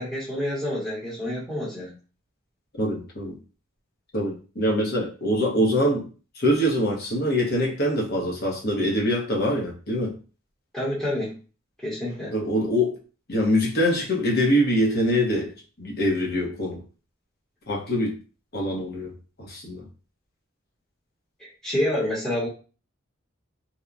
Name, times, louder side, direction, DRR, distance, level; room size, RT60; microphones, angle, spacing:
voice 1, 0.0-1.9 10.7-11.4 11.8-12.3 21.4-22.5, left 1 dB, 5° left, -9 dB, 0.8 m, -28 dB
voice 2, 2.8-3.4 4.1-6.0 6.4-10.1 12.3-13.0 13.3-15.5 15.8-16.8 17.7-18.1 18.5-19.1 19.4-19.8, equal, 55° left, -1 dB, 0.8 m, -24 dB
2.9 x 2.1 x 2.4 m, 0.35 s
head